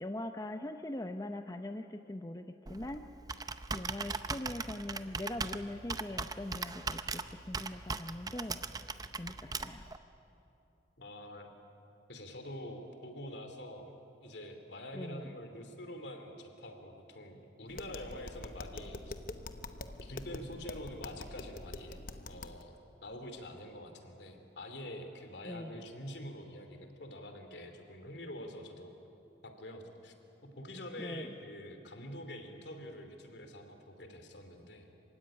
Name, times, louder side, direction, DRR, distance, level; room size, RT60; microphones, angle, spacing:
voice 1, 0.0-3.1 3.7-8.6 9.2-9.8 14.9-15.3 25.4-25.8 31.0-31.3, left 1 dB, 20° left, 7 dB, 0.6 m, -41 dB
Computer keyboard, 2.7-10.0, right 4 dB, 20° right, 0.6 m, -39 dB
voice 2, 11.0-11.5 12.1-19.1 19.9-22.0 22.3-22.8 23.0-28.9 29.4-30.1 30.4-34.9, left 1 dB, 70° left, 6 dB, 2.7 m, -46 dB
Tap, 17.7-22.6, left 2 dB, 50° left, 0.9 m, -45 dB
26.5 x 16.5 x 10.0 m, 3.0 s
head